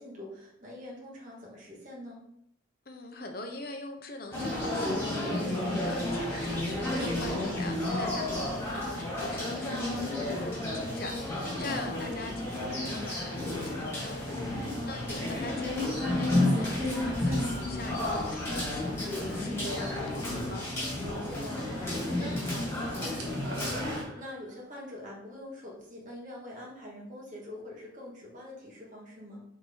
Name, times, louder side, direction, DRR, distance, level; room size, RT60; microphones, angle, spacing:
voice 1, 0.0-2.2 11.6-12.0 14.8-15.3 19.4-19.7 21.0-29.5, left 1 dB, 40° right, -4 dB, 2.0 m, -44 dB
voice 2, 2.9-20.7, left 2 dB, 50° left, 4 dB, 0.9 m, -43 dB
sound 1, 4.3-24.0, left 1 dB, 10° left, 2.2 m, -31 dB
sound 2, 20.8-21.8 22.1-22.4 22.7-24.8, right 2 dB, 75° right, 1.4 m, -46 dB
7.0 x 3.9 x 4.0 m, 0.75 s
head